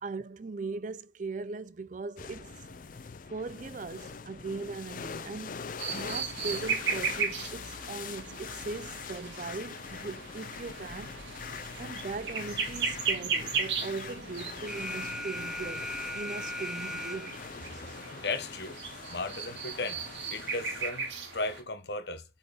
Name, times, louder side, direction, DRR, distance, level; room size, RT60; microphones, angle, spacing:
voice 1, 0.0-2.8 3.3-5.7 5.9-11.2 11.8-17.4, right 3 dB, 45° right, 0.4 m, -39 dB
sound 1, 2.2-20.9, left 6 dB, 45° left, 0.5 m, -43 dB
sound 2, 5.8-21.6, right 6 dB, 75° right, 2.0 m, -37 dB
Alarm, 14.7-17.6, equal, ahead, 0.7 m, -38 dB
voice 2, 18.1-18.8 19.1-20.0 20.3-22.2, left 3 dB, 65° left, 1.0 m, -35 dB
8.0 x 4.4 x 3.3 m
head